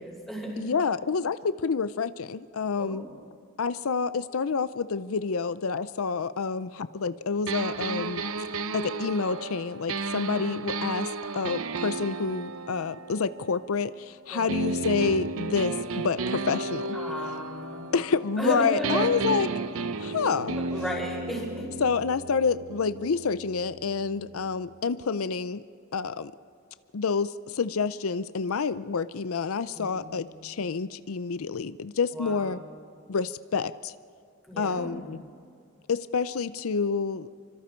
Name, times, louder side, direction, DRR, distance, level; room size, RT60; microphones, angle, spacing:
voice 1, 0.0-0.6 2.8-3.1 10.3-10.5 14.3-14.5 16.9-18.0 18.4-19.3 20.5-21.7 29.7-30.6 32.1-33.1 34.5-35.2, equal, ahead, -4 dB, 6.1 m, -35 dB
voice 2, 0.6-3.0 3.6-8.2 8.7-15.8 16.0-17.0 17.9-19.5 20.0-20.6 21.8-25.6 25.9-26.3 26.9-32.6 33.1-33.9 34.6-35.2 35.9-37.3, left 5 dB, 85° left, 14 dB, 0.6 m, -28 dB
sound 1, 7.5-14.0 14.5-18.5 18.8-24.6, right 3 dB, 80° right, 0.8 m, -33 dB
29.0 x 25.0 x 4.5 m, 2.2 s
head